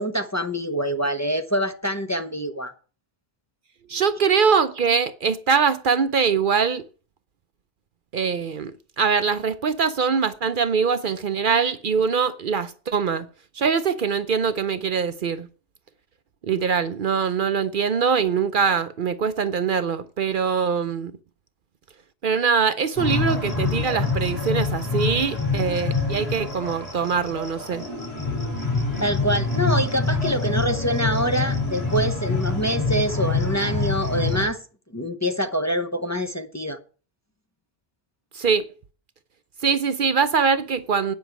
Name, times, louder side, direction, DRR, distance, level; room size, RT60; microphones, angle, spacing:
voice 1, 0.0-2.7 29.0-34.6 34.9-36.8, equal, 15° left, 0.8 m, -25 dB
voice 2, 3.9-6.8 8.1-8.7 9.0-13.3 13.6-15.5 16.4-21.1 22.2-27.8 38.3-38.7 39.6-41.1, right 6 dB, 60° right, 0.8 m, -23 dB
sound 1, 23.0-34.5, left 3 dB, 40° left, 4.0 m, -26 dB
9.4 x 6.1 x 8.0 m
omnidirectional pair, 1.0 m